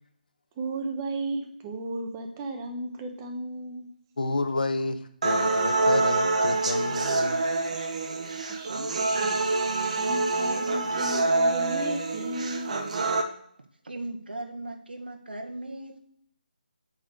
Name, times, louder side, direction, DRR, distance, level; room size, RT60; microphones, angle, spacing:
voice 1, 0.6-3.9 8.5-9.4 9.9-12.7, right 1 dB, 15° right, 4 dB, 1.0 m, -35 dB
voice 2, 4.2-7.9, left 3 dB, 60° left, 9 dB, 1.1 m, -31 dB
sound 1, 5.2-13.2, right 3 dB, 45° right, 1.1 m, -26 dB
voice 3, 13.8-16.0, right 1 dB, 90° right, 4 dB, 1.5 m, -37 dB
8.5 x 3.9 x 6.6 m, 0.66 s
figure-of-eight pair, 165°, 5 cm